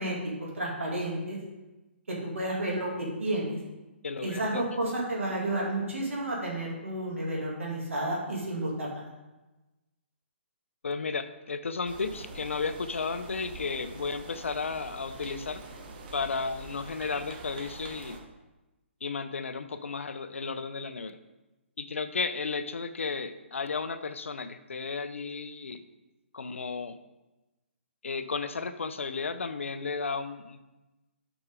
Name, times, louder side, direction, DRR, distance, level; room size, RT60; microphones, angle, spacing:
voice 1, 0.0-1.4 2.1-3.6 4.2-9.0, right 1 dB, 85° right, -3 dB, 2.5 m, -31 dB
voice 2, 4.0-4.7 10.8-15.6 16.1-18.2 19.0-21.2 21.8-25.8 26.3-27.0 28.0-30.6, left 4 dB, 80° left, 11 dB, 0.5 m, -33 dB
sound 1, 11.8-18.2, right 2 dB, 45° right, 1.3 m, -45 dB
7.7 x 6.1 x 3.7 m, 1.1 s
hypercardioid pair, 140°, 7 cm